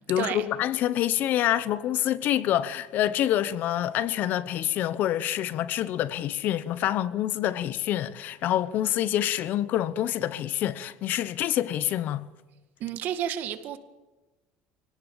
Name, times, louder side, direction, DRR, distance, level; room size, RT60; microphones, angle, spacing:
voice 1, 0.1-12.3, left 12 dB, 50° left, 0.9 m, -27 dB
voice 2, 12.8-13.8, right 10 dB, 50° right, 2.0 m, -31 dB
25.0 x 18.0 x 7.3 m
cardioid pair, 140°, 4 cm